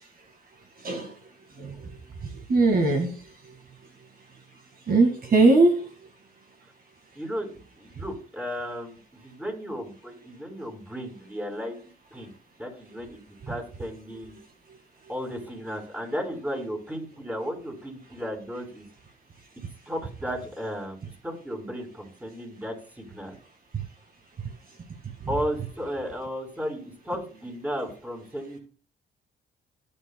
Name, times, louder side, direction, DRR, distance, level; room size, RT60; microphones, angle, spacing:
voice 1, 1.6-1.9 2.5-3.2 4.9-5.8, right 3 dB, 45° right, 3 dB, 2.0 m, -20 dB
voice 2, 7.1-9.0 9.2-11.8 12.1-12.3 12.6-13.2 13.5-14.4 15.1-18.8 19.9-21.0 21.2-23.3 25.3-28.6, equal, 10° right, 2 dB, 4.5 m, -34 dB
17.5 x 9.0 x 2.3 m, 0.41 s
cardioid pair, 90°, 20 cm